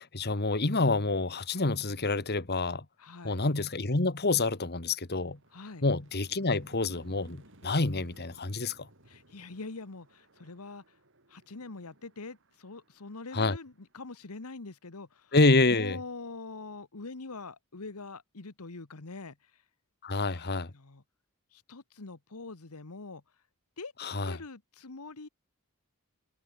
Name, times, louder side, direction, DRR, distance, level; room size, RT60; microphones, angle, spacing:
voice 1, 0.0-2.8 3.2-5.4 5.8-8.9 13.3-13.6 15.3-16.0 20.0-20.7 24.0-24.4, left 3 dB, 45° left, 1.6 m, -27 dB
voice 2, 3.0-3.4 5.5-5.8 9.1-10.8 11.3-15.3 15.7-19.6 20.3-21.0 21.5-23.2 23.8-25.3, left 3 dB, 80° left, 1.4 m, -44 dB
sound 1, 4.0-14.7, right 1 dB, 55° right, 7.6 m, -60 dB
head